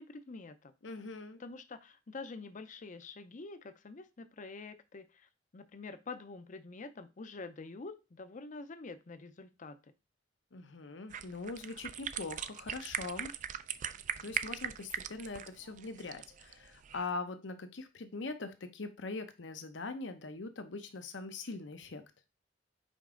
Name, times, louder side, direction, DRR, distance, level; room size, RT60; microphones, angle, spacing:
voice 1, 0.0-0.7 1.4-9.9, left 3 dB, 45° left, 12 dB, 0.6 m, -47 dB
voice 2, 0.8-1.4 10.5-13.3 14.2-22.0, left 3 dB, 70° left, 9 dB, 0.8 m, -42 dB
sound 1, 11.1-17.1, right 9 dB, 40° right, 0.4 m, -40 dB
5.2 x 4.8 x 3.7 m, 0.28 s
head